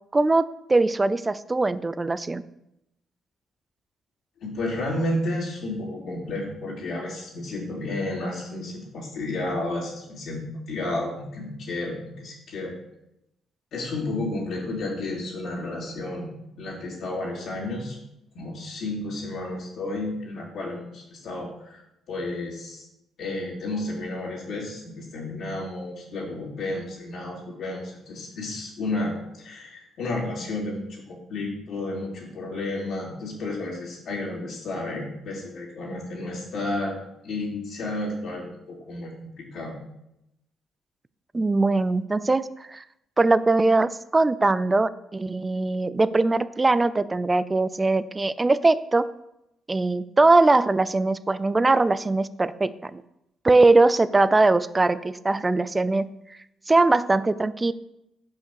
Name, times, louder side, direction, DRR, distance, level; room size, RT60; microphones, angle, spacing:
voice 1, 0.1-2.4 41.3-42.8 43.2-49.1 49.7-53.0 53.4-56.1 56.7-57.7, right 3 dB, 20° right, 16 dB, 0.4 m, -21 dB
voice 2, 4.4-12.8 13.7-16.3 16.6-18.0 18.3-21.8 22.1-22.9 23.2-37.0 37.2-39.7, left 2 dB, 75° left, -9 dB, 3.5 m, -32 dB
6.5 x 5.3 x 6.9 m, 0.84 s
cardioid pair, 90°, 0 cm